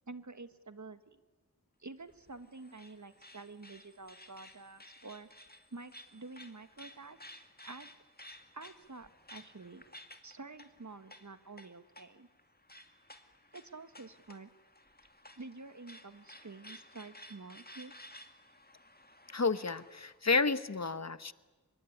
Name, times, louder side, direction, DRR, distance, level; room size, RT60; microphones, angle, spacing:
voice 1, 0.1-1.2 1.8-5.3 5.7-7.2 7.6-7.9 8.5-9.8 10.2-12.3 13.5-14.5 15.4-17.9, right 3 dB, 50° right, 11 dB, 1.6 m, -49 dB
sound 1, 2.0-20.2, left 1 dB, 25° left, 2.3 m, -56 dB
voice 2, 19.3-21.3, left 4 dB, 45° left, 14 dB, 1.1 m, -31 dB
25.0 x 22.5 x 9.9 m, 1.2 s
wide cardioid pair, 40°, 36 cm